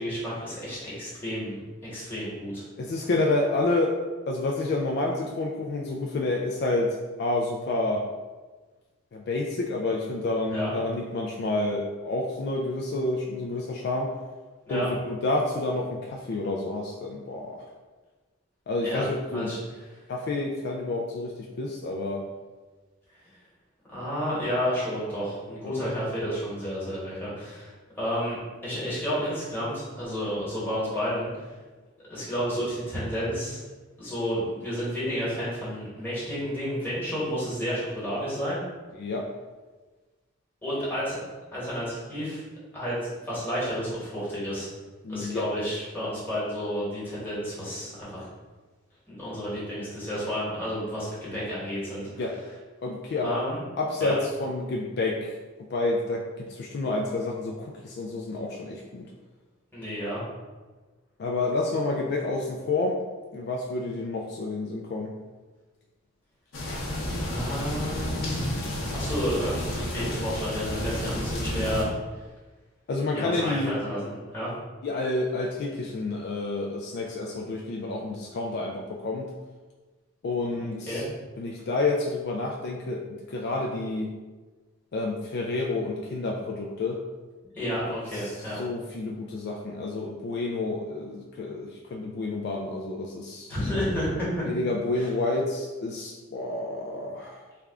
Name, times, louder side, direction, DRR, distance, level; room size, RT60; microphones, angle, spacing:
voice 1, 0.0-2.6 10.5-10.7 14.7-14.9 18.8-19.6 23.9-31.3 32.1-33.6 34.0-38.6 40.6-41.2 41.5-42.4 42.7-43.0 43.3-44.7 45.1-48.3 49.1-52.1 53.2-53.7 54.0-54.1 59.7-60.2 67.1-68.5 68.9-71.9 73.1-74.5 80.5-81.0 87.5-88.6 93.5-94.5 94.9-95.1, equal, 10° left, -9 dB, 1.3 m, -31 dB
voice 2, 2.8-4.0 4.3-8.0 9.1-14.1 14.7-17.6 18.7-19.5 20.1-22.2 25.8-25.9 39.0-39.3 45.0-45.5 52.2-52.3 52.8-53.4 53.8-55.3 55.7-59.0 61.2-63.0 63.3-65.1 72.9-73.7 74.8-79.3 80.2-81.0 81.4-84.1 84.9-87.0 88.1-93.5 94.5-97.5, left 2 dB, 50° left, 0 dB, 0.3 m, -29 dB
sound 1, 66.5-71.8, left 1 dB, 80° left, 0.7 m, -31 dB
3.4 x 2.3 x 3.6 m, 1.3 s
head